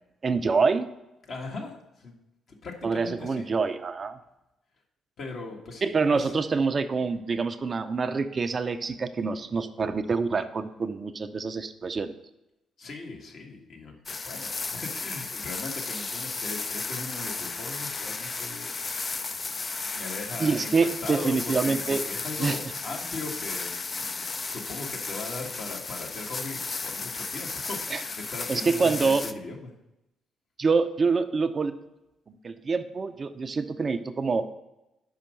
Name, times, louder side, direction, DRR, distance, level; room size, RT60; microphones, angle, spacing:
voice 1, 0.2-0.9 2.8-4.2 5.8-12.1 20.4-22.0 22.4-22.5 27.9-28.0 28.5-29.2 30.6-31.7 32.4-34.5, right 4 dB, 40° right, 9 dB, 0.5 m, -26 dB
voice 2, 1.3-2.1 2.5-3.5 5.2-6.3 12.8-19.1 19.9-24.1 24.5-29.7, left 3 dB, 60° left, 0 dB, 1.6 m, -39 dB
sound 1, 14.1-29.3, left 4 dB, 40° left, 0.5 m, -34 dB
5.6 x 5.1 x 6.3 m, 0.92 s
hypercardioid pair, 50°, 0 cm